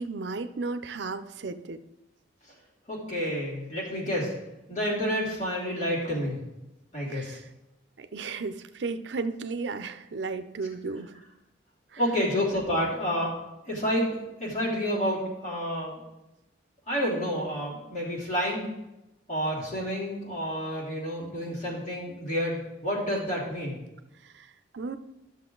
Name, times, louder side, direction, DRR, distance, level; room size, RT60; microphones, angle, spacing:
voice 1, 0.0-1.8 7.1-7.4 8.0-11.1 11.9-12.0 24.2-25.0, right 4 dB, 75° right, 10 dB, 0.5 m, -34 dB
voice 2, 2.9-4.3 4.7-6.4 6.9-7.4 12.0-13.3 13.7-16.0 16.9-18.7 19.3-23.8, equal, 45° left, -5 dB, 3.1 m, -29 dB
12.5 x 6.5 x 3.9 m, 0.95 s
head